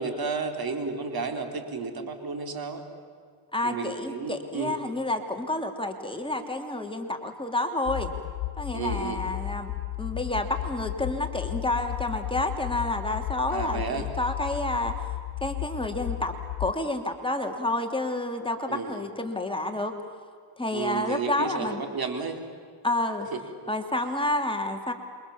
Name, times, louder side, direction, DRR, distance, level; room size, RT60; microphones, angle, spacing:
voice 1, 0.0-2.8 3.6-4.7 8.7-9.2 13.5-14.1 18.7-19.0 20.7-22.4 23.3-23.4, right 4 dB, 50° right, 6 dB, 4.1 m, -32 dB
voice 2, 3.5-8.1 8.6-9.7 10.0-14.9 15.4-16.3 16.6-20.0 20.6-21.8 22.8-23.3 23.7-24.9, left 1 dB, 10° left, 3 dB, 3.1 m, -29 dB
sound 1, 7.9-16.7, left 18 dB, 85° left, 0.7 m, -34 dB
28.0 x 25.0 x 7.3 m, 2.1 s
cardioid pair, 85°, 47 cm